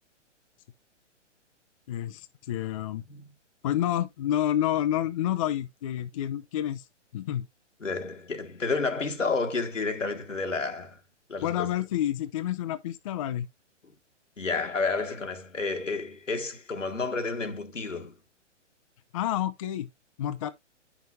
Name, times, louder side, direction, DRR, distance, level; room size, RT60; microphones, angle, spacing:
voice 1, 1.9-3.0 3.6-6.8 7.1-7.5 11.4-13.5 19.1-19.9 20.2-20.5, left 11 dB, 30° left, 0.4 m, -29 dB
voice 2, 7.8-11.0 11.3-11.7 13.8-13.9 14.4-18.2, left 4 dB, 85° left, 1.6 m, -30 dB
9.2 x 5.9 x 2.6 m
figure-of-eight pair, 125°, 37 cm